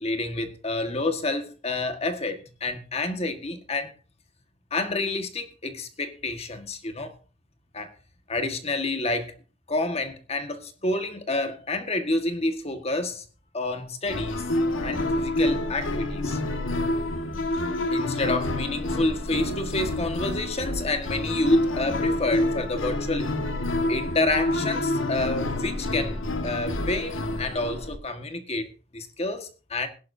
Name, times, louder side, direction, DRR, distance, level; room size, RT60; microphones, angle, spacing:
voice 1, 0.0-3.9 4.7-7.1 7.7-7.9 8.3-9.3 9.7-13.2 13.5-14.4 14.8-16.4 17.9-23.3 23.9-29.9, left 2 dB, 30° left, 1.6 m, -29 dB
sound 1, 14.1-28.0, left 1 dB, 75° left, 1.6 m, -28 dB
21.5 x 11.0 x 2.7 m
head